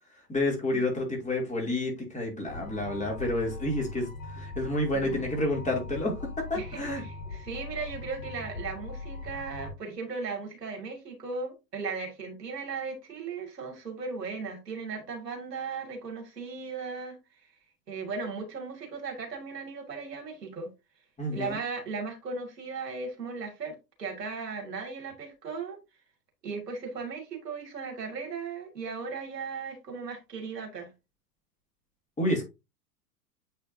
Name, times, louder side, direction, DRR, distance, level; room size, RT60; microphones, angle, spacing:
voice 1, 0.3-7.0 21.2-21.6 32.2-32.4, left 1 dB, 15° left, 2.9 m, -29 dB
sound 1, 2.5-9.7, left 3 dB, 60° left, 2.0 m, -40 dB
voice 2, 4.9-5.2 6.5-17.2 17.9-20.7 21.3-25.8 26.4-30.9, right 4 dB, 85° right, 2.6 m, -37 dB
8.4 x 4.6 x 2.7 m
figure-of-eight pair, 95°, 48 cm